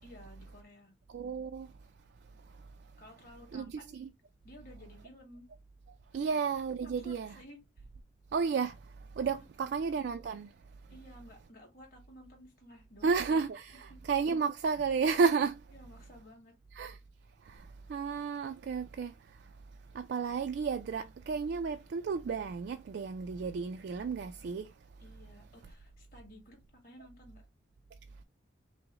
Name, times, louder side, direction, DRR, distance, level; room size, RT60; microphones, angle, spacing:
voice 1, 0.0-0.9 3.0-4.0 4.4-5.5 6.2-6.3 7.0-7.8 9.6-9.7 10.9-13.2 13.9-14.0 15.7-16.5 25.0-26.6 26.8-27.4, equal, 50° left, 2.2 m, -54 dB
voice 2, 1.1-1.7 2.4-2.7 3.5-4.1 6.1-7.4 8.3-10.5 13.0-15.6 16.7-17.0 17.4-19.5 19.9-24.7, right 5 dB, 60° right, 0.3 m, -33 dB
5.8 x 2.0 x 3.6 m
head